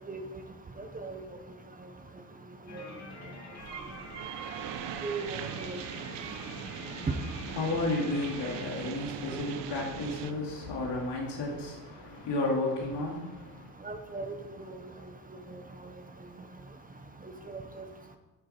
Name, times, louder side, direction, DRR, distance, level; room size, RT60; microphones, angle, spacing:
voice 1, 0.8-1.2 2.7-2.8 5.0-5.8 7.1-7.2 13.8-14.3 14.7-14.8 15.5-15.6 17.5-17.8, right 4 dB, 20° right, 6 dB, 0.7 m, -36 dB
sound 1, 2.7-8.7, left 3 dB, 35° left, 2.3 m, -46 dB
sound 2, 3.6-10.3, right 10 dB, 65° right, 0.8 m, -40 dB
voice 2, 7.4-13.7, left 2 dB, 60° left, -2 dB, 2.4 m, -32 dB
12.0 x 8.3 x 4.3 m, 1.1 s
cardioid pair, 145°, 46 cm